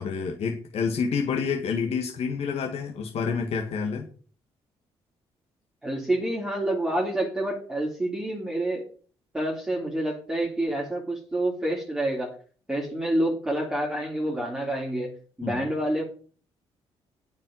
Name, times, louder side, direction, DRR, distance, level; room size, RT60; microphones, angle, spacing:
voice 1, 0.0-4.1 15.4-15.6, left 5 dB, 65° left, 2 dB, 1.7 m, -28 dB
voice 2, 5.8-8.9 9.3-12.4 12.7-16.0, right 1 dB, 5° right, -4 dB, 3.3 m, -28 dB
8.9 x 5.6 x 7.7 m, 0.42 s
cardioid pair, 75°, 11 cm